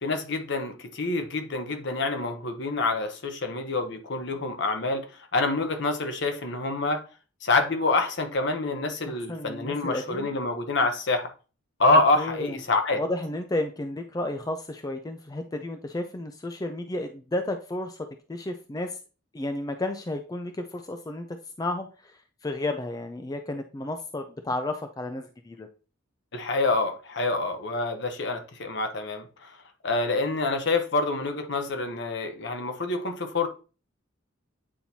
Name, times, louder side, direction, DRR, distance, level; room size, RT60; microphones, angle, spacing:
voice 1, 0.0-5.1 5.3-7.0 7.4-11.3 11.8-13.0 26.3-29.5 29.8-33.5, left 3 dB, 60° left, 0.9 m, -26 dB
voice 2, 9.0-10.3 12.2-12.6 12.9-18.0 18.3-19.0 19.3-21.3 21.6-25.7, left 1 dB, 20° left, 0.4 m, -32 dB
8.7 x 4.4 x 2.7 m
head